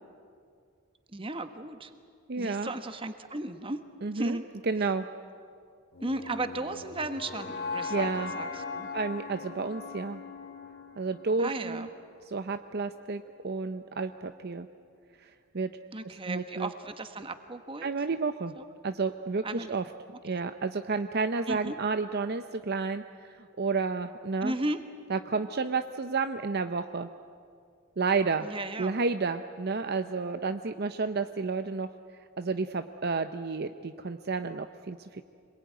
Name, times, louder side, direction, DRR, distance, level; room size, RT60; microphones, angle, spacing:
voice 1, 1.1-1.9 2.3-3.8 4.1-4.4 4.8-4.9 6.0-8.1 8.3-8.9 11.4-11.9 15.9-17.9 18.6-18.7 19.4-19.8 20.3-20.4 21.5-21.8 24.4-24.8 28.4-28.9, right 2 dB, 25° right, 8 dB, 1.3 m, -35 dB
voice 2, 2.3-2.7 4.0-4.4 4.6-5.0 7.9-8.3 8.9-10.2 11.0-11.9 12.3-14.7 15.2-15.7 16.0-16.7 17.8-18.5 18.8-19.8 20.2-24.5 25.1-27.1 28.0-28.5 28.8-31.9 32.4-35.2, right 4 dB, 50° right, 8 dB, 0.7 m, -31 dB
sound 1, 5.9-12.0, left 4 dB, 50° left, 1.6 m, -39 dB
26.5 x 21.0 x 9.4 m, 2.3 s
head